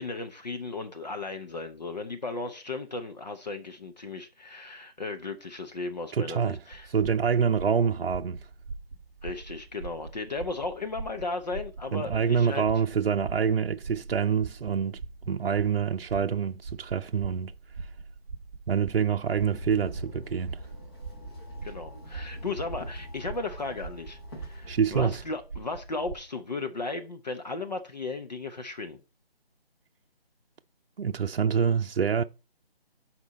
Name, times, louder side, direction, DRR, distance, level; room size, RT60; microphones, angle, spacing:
voice 1, 0.0-6.9 9.2-12.6 21.6-29.0, left 3 dB, 45° left, 0.8 m, -35 dB
voice 2, 6.1-6.6 6.9-8.4 11.9-15.0 15.3-17.5 18.7-20.6 24.7-25.2 31.0-32.2, right 6 dB, 65° right, 0.6 m, -26 dB
sound 1, 6.7-26.1, right 4 dB, 15° right, 0.9 m, -42 dB
Walk footsteps / Chatter / Hiss, 19.2-25.2, left 1 dB, 25° left, 1.7 m, -43 dB
11.0 x 4.4 x 4.1 m
figure-of-eight pair, 165°, 31 cm